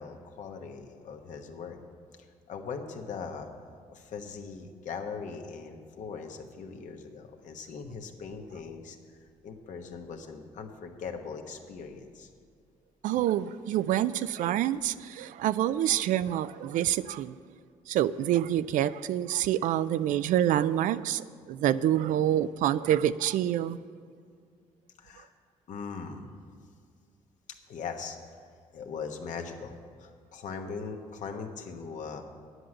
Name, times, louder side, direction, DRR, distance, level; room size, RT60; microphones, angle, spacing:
voice 1, 0.0-1.8 2.5-3.5 3.9-9.0 9.4-12.3 25.0-25.3 25.7-26.3 27.7-28.2 28.7-32.3, left 5 dB, 70° left, 4 dB, 1.2 m, -40 dB
voice 2, 13.0-17.4 17.9-23.8, right 11 dB, 80° right, 15 dB, 0.4 m, -27 dB
9.7 x 7.9 x 7.6 m, 2.2 s
cardioid pair, 85°, 13 cm